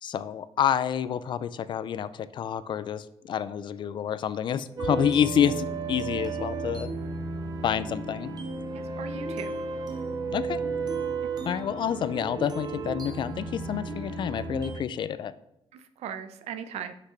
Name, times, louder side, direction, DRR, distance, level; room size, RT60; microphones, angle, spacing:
voice 1, 0.0-6.9 7.6-8.3 10.3-10.6 11.4-15.3, left 9 dB, 45° left, 16 dB, 0.4 m, -28 dB
sound 1, 4.8-14.8, right 4 dB, 40° right, 1.0 m, -33 dB
voice 2, 8.7-9.5 15.7-16.9, right 8 dB, 75° right, 10 dB, 0.7 m, -38 dB
6.0 x 5.8 x 5.7 m, 0.80 s
cardioid pair, 145°, 11 cm